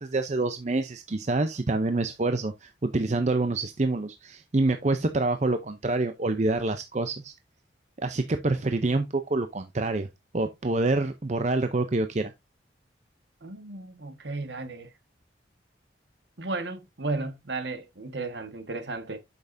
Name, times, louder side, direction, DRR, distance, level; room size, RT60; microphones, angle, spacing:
voice 1, 0.0-7.3 8.0-10.1 10.3-12.3, right 2 dB, 35° right, 0.6 m, -27 dB
voice 2, 13.4-14.9 16.4-19.2, right 3 dB, 65° right, 1.5 m, -34 dB
8.5 x 6.6 x 2.6 m
head